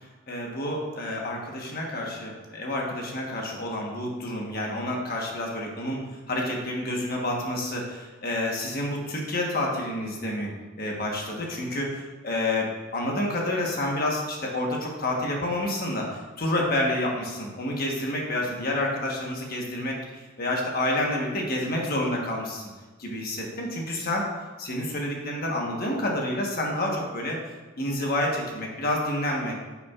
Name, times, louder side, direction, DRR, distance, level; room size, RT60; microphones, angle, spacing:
voice 1, 0.3-22.6 23.0-24.3 24.6-27.4 27.8-29.5, left 1 dB, 45° left, -1 dB, 1.2 m, -29 dB
10.0 x 5.8 x 2.4 m, 1.3 s
head